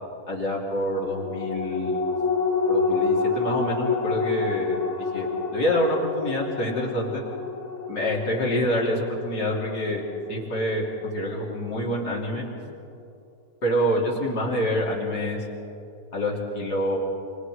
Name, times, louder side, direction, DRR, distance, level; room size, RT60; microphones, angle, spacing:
voice 1, 0.3-2.0 2.7-4.7 5.1-5.3 5.5-7.2 7.9-10.0 10.3-12.5 13.6-15.5 16.1-17.0, equal, 70° left, -3 dB, 3.6 m, -26 dB
sound 1, 0.9-11.7 12.1-12.2, left 4 dB, 45° left, 2.1 m, -28 dB
29.0 x 27.5 x 3.2 m, 2.6 s
omnidirectional pair, 1.8 m